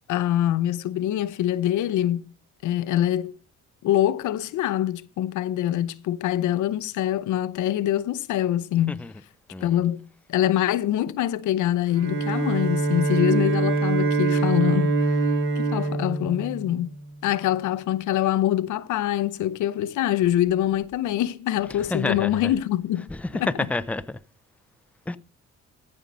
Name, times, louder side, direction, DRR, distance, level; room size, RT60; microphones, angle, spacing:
voice 1, 0.1-2.2 2.6-3.3 3.8-9.1 9.6-15.1 15.6-17.0 17.2-23.5, left 12 dB, 80° left, 0.7 m, -24 dB
Bowed string instrument, 11.9-17.1, right 3 dB, 45° right, 4.7 m, -24 dB
voice 2, 21.7-22.5 23.1-24.2 25.1-25.2, left 2 dB, 5° left, 0.6 m, -29 dB
14.0 x 5.4 x 5.4 m
cardioid pair, 90°, 30 cm